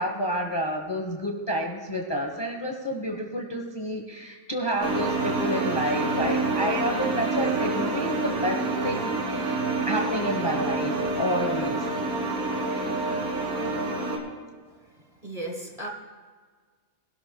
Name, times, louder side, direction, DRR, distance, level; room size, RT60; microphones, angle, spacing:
voice 1, 0.0-11.8 12.4-12.9, equal, 20° left, 1 dB, 1.1 m, -30 dB
sound 1, 4.8-14.2, right 2 dB, 70° right, 2.5 m, -27 dB
voice 2, 15.2-15.9, right 1 dB, 25° right, 1 dB, 1.3 m, -34 dB
20.5 x 12.0 x 2.3 m, 1.5 s
omnidirectional pair, 1.5 m